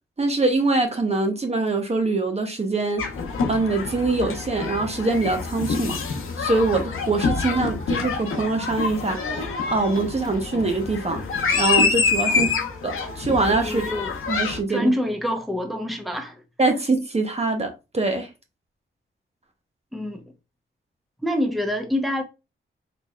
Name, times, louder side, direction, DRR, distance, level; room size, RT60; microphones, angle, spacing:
voice 1, 0.2-3.0 3.5-6.0 6.4-9.4 9.7-11.2 11.5-12.5 12.8-13.8 14.3-14.9 16.6-18.3, right 3 dB, 30° right, 0.8 m, -23 dB
sound 1, 3.0-14.6, left 4 dB, 85° left, 0.8 m, -26 dB
voice 2, 13.6-14.1 14.7-16.4 19.9-20.2 21.2-22.2, left 1 dB, ahead, 0.8 m, -26 dB
4.2 x 3.0 x 2.3 m
cardioid pair, 70°, 21 cm